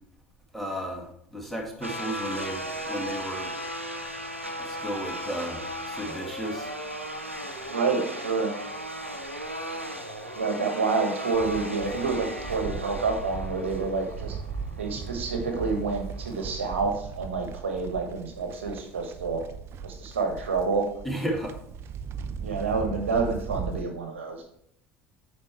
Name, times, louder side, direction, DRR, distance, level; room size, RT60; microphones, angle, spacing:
voice 1, 0.5-3.5 4.6-6.7 21.0-21.5, equal, ahead, 0 dB, 2.1 m, -34 dB
sound 1, 1.8-16.7, equal, 90° right, 0.8 m, -37 dB
voice 2, 7.7-8.5 10.3-14.3 14.8-19.4 19.8-20.8 22.4-24.4, right 4 dB, 70° right, 4 dB, 1.3 m, -28 dB
Livestock farm animals working animals, 11.3-23.8, right 6 dB, 40° right, 0.6 m, -38 dB
8.8 x 5.1 x 4.6 m, 0.72 s
figure-of-eight pair, 65°, 7 cm